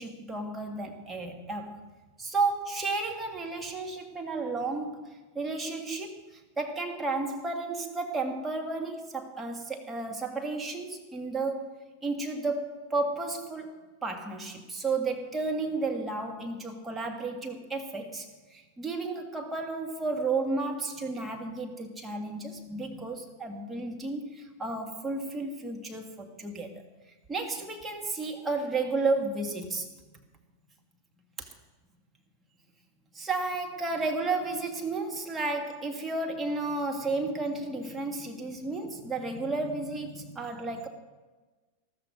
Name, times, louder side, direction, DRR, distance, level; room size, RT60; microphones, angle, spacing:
voice 1, 0.0-1.8 2.2-5.1 5.4-6.2 6.6-26.8 27.3-29.9 31.4-31.5 33.1-40.9, right 3 dB, 10° right, 2 dB, 1.9 m, -32 dB
13.5 x 13.5 x 5.2 m, 1.2 s
figure-of-eight pair, 90°, 0 cm